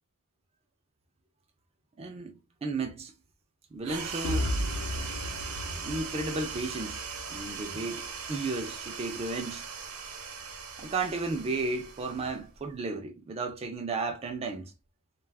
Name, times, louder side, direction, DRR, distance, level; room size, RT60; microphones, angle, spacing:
voice 1, 2.0-3.1 3.7-4.5 5.8-7.0 7.3-9.6 10.8-14.7, right 3 dB, 30° right, 0.3 m, -34 dB
sound 1, 3.8-12.7, right 5 dB, 85° right, 0.7 m, -40 dB
sound 2, 4.2-8.1, left 1 dB, 80° left, 0.6 m, -35 dB
2.3 x 2.2 x 3.3 m
head